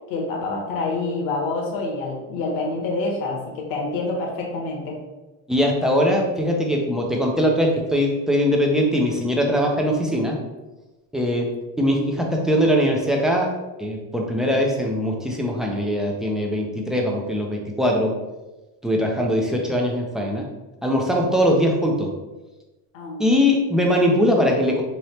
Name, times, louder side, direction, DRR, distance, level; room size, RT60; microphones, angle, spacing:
voice 1, 0.1-5.0 22.9-23.3, left 3 dB, 60° left, -1 dB, 1.1 m, -27 dB
voice 2, 5.5-10.4 11.1-11.5 11.8-13.5 13.8-18.1 18.8-20.4 20.8-22.1 23.2-24.8, equal, ahead, -1 dB, 0.3 m, -21 dB
3.3 x 2.8 x 4.1 m, 1.1 s
cardioid pair, 140°, 39 cm